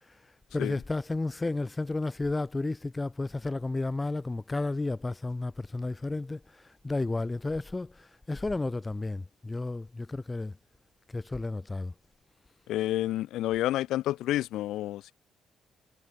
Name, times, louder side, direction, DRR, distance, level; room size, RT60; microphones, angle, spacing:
voice 1, 0.5-10.6 11.1-11.9, left 2 dB, 20° left, 3.1 m, -32 dB
voice 2, 12.7-15.1, left 14 dB, 85° left, 0.6 m, -29 dB
cardioid pair, 90°, 0 cm